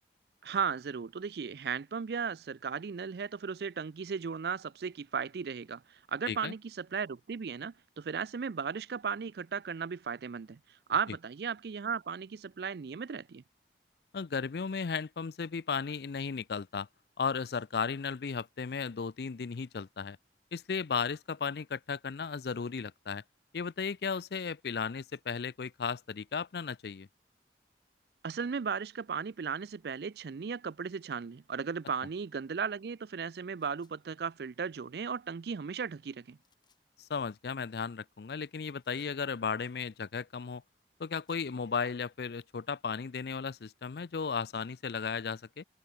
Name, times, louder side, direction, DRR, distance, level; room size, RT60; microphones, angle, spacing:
voice 1, 0.4-10.6 10.9-13.4 28.2-36.4, right 6 dB, 60° right, 0.4 m, -36 dB
voice 2, 14.1-16.9 17.2-20.2 20.5-23.2 23.5-27.1 37.0-40.6 41.0-45.6, left 5 dB, 60° left, 0.5 m, -35 dB
sound 1, 33.6-34.0 36.4-36.8 38.8-39.2 40.9-41.5, left 7 dB, 25° left, 5.0 m, -73 dB
head